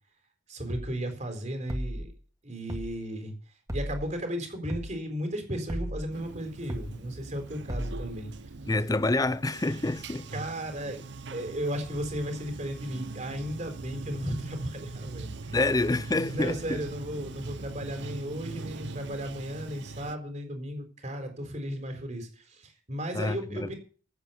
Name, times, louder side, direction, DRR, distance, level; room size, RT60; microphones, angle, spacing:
voice 1, 0.5-2.1 2.4-3.3 3.7-8.3 10.3-11.0 11.3-15.6 16.3-23.7, equal, 40° right, 4.0 m, -35 dB
sound 1, 0.7-0.9 1.7-2.1 2.7-2.9 3.7-4.1 4.7-4.9 5.7-6.1 6.7-6.9 7.7-8.1, equal, 20° right, 2.0 m, -34 dB
Bathtub (filling or washing), 6.1-20.2, right 3 dB, 75° right, 0.9 m, -41 dB
voice 2, 8.7-10.3 15.5-16.8 23.1-23.7, left 2 dB, 20° left, 0.5 m, -27 dB
15.0 x 8.8 x 5.7 m
head